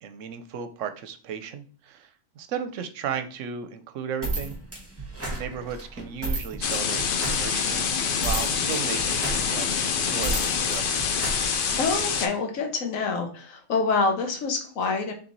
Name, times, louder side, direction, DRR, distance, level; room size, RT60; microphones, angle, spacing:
voice 1, 0.0-4.6 5.3-7.9 8.2-11.0, right 7 dB, 75° right, 9 dB, 0.9 m, -35 dB
sound 1, 4.2-12.1, right 2 dB, 10° right, 1.0 m, -33 dB
sound 2, 6.6-12.3, left 6 dB, 60° left, 0.6 m, -26 dB
voice 2, 11.7-15.1, left 4 dB, 85° left, 4 dB, 1.3 m, -26 dB
3.3 x 3.0 x 3.9 m, 0.41 s
omnidirectional pair, 1.3 m